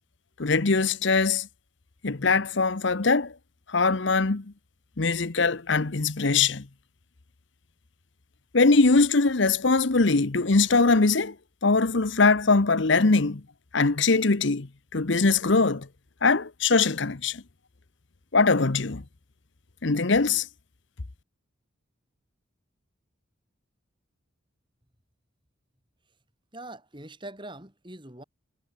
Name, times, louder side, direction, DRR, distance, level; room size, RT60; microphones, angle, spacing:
voice 1, 0.4-1.5 2.0-3.3 3.7-4.4 5.0-6.7 8.5-11.3 11.6-13.4 13.7-15.9 16.2-17.4 18.3-19.0 19.8-20.5, left 3 dB, 60° left, 1.0 m, -22 dB
voice 2, 26.5-28.2, right 1 dB, 20° right, 3.9 m, -42 dB
head